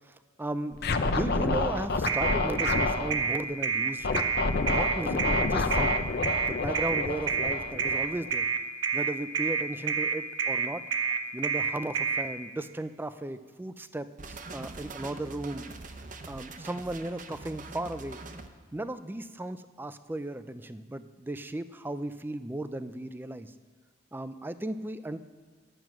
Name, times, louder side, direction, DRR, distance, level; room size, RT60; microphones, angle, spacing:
voice 1, 0.1-4.3 4.7-6.0 6.5-8.5 8.9-10.9 11.3-15.7 16.3-18.2 18.7-23.5 24.1-25.2, right 1 dB, 10° right, 12 dB, 0.4 m, -36 dB
Scratching (performance technique), 0.8-3.1 4.0-8.3, left 3 dB, 55° left, 0.6 m, -29 dB
sound 1, 2.1-12.2, right 6 dB, 70° right, 0.8 m, -28 dB
sound 2, 14.2-18.5, right 3 dB, 40° right, 0.7 m, -43 dB
11.0 x 9.0 x 6.0 m, 1.5 s
head